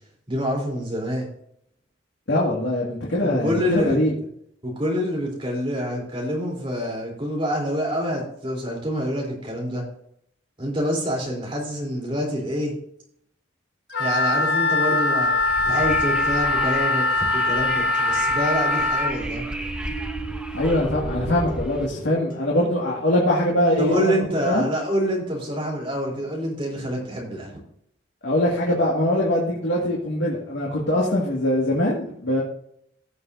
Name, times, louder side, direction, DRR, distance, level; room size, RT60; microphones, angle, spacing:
voice 1, 0.3-1.3 3.2-4.0 4.6-9.9 10.6-12.7 14.0-15.3 15.7-19.4 23.8-27.5, equal, 30° right, -2 dB, 3.6 m, -26 dB
voice 2, 2.3-4.1 20.5-24.1 24.4-24.7 28.2-32.4, left 1 dB, 80° left, -4 dB, 2.0 m, -22 dB
Wind instrument woodwind instrument, 13.9-19.1, left 3 dB, 60° left, 1.1 m, -22 dB
Wind, 15.2-21.9, right 1 dB, 5° right, 0.7 m, -34 dB
sound 1, 18.3-25.6, right 3 dB, 45° left, 1.9 m, -39 dB
16.0 x 6.9 x 2.7 m, 0.71 s
head